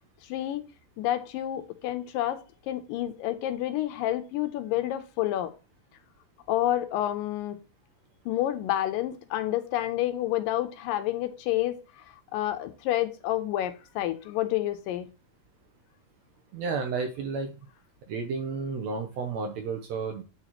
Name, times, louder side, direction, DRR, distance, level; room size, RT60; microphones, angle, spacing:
voice 1, 0.3-0.6 1.0-5.5 6.5-7.6 8.3-11.8 12.3-15.1, left 13 dB, 90° left, 2.4 m, -29 dB
voice 2, 16.5-17.5 18.1-20.2, right 4 dB, 75° right, 1.6 m, -32 dB
8.7 x 4.1 x 2.9 m
omnidirectional pair, 3.8 m